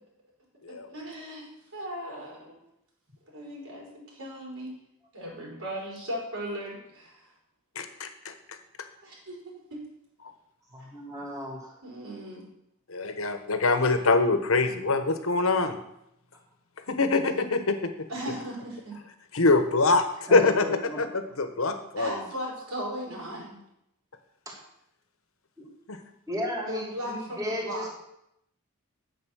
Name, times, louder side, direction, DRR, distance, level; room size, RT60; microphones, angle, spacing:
voice 1, 0.7-1.5 1.7-2.6 3.2-4.7 5.1-7.3 9.0-9.8 10.8-10.9 11.8-12.4 18.1-19.0 22.0-23.6 26.6-27.9, equal, 75° right, -3 dB, 4.6 m, -37 dB
voice 2, 7.8-8.3 12.9-15.8 16.9-17.9 19.3-20.6 21.0-21.1 21.4-22.1 25.9-26.0, left 3 dB, 70° left, 8 dB, 1.2 m, -24 dB
voice 3, 10.7-11.7 20.3-21.0 24.5-24.6 25.6-25.7 26.3-27.9, left 1 dB, 15° right, -2 dB, 2.6 m, -34 dB
9.1 x 7.6 x 6.4 m, 0.80 s
head